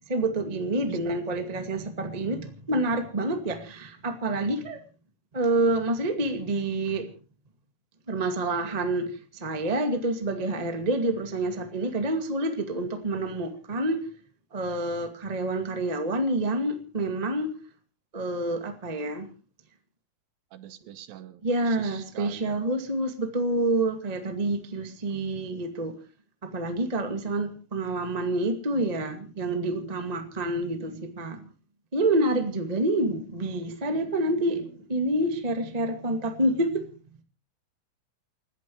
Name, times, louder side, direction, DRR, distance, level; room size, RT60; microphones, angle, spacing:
voice 1, 0.1-4.8 5.3-7.1 8.1-14.1 14.5-17.5 18.1-19.3 21.4-25.9 26.4-31.4 31.9-36.9, right 2 dB, 30° right, 5 dB, 0.7 m, -28 dB
voice 2, 20.5-21.4 21.7-22.6, right 12 dB, 75° right, 12 dB, 2.5 m, -43 dB
30.0 x 13.5 x 3.0 m, 0.36 s
omnidirectional pair, 4.7 m